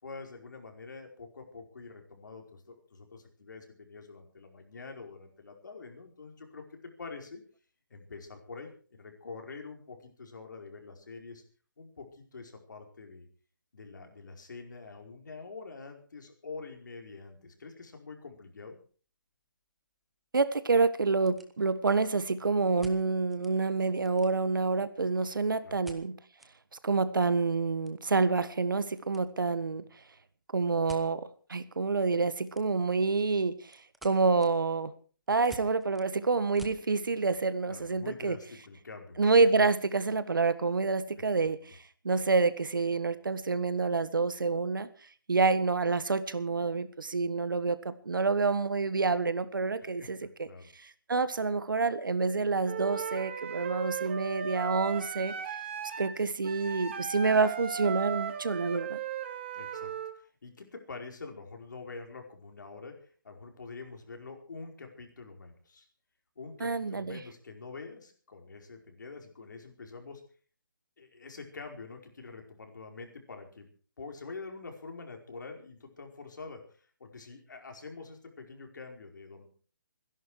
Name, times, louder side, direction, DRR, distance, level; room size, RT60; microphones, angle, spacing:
voice 1, 0.0-7.4 7.9-11.4 11.8-13.3 13.7-18.8 25.6-25.8 37.6-39.2 49.8-50.7 59.5-65.9 66.4-70.2 71.0-73.7 74.0-79.5, left 4 dB, 65° left, 3 dB, 4.9 m, -46 dB
sound 1, 18.9-19.0 19.3-19.4 20.0-20.1 20.3-20.4 21.0-22.0 22.8-23.6 23.9-24.7 25.8-26.5 26.9-27.0 27.3-29.3 29.5-29.8 30.9-31.1 32.4-33.0 33.3-36.9, right 1 dB, ahead, 0.8 m, -52 dB
voice 2, 20.3-26.2 26.8-29.8 30.5-34.9 35.3-38.4 39.2-44.9 45.3-50.5 50.7-55.3 56.0-59.0 66.6-67.2, right 4 dB, 75° right, 14 dB, 1.6 m, -28 dB
Wind instrument woodwind instrument, 52.7-60.1, right 8 dB, 35° right, 1.7 m, -37 dB
24.5 x 11.0 x 4.8 m, 0.41 s
hypercardioid pair, 165°, 11 cm